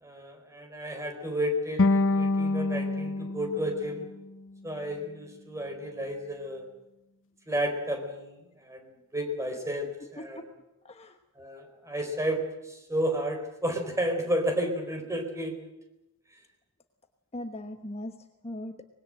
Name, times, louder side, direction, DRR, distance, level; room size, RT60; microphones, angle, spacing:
voice 1, 0.0-4.1 4.6-6.6 7.5-8.4 8.7-10.4 11.4-12.4 12.7-15.5, equal, 15° right, 5 dB, 4.4 m, -32 dB
sound 1, 1.8-4.9, left 2 dB, 55° left, 0.8 m, -27 dB
voice 2, 10.8-11.2 17.3-18.8, left 1 dB, 30° left, 6 dB, 1.2 m, -39 dB
25.0 x 20.5 x 7.8 m, 0.94 s
head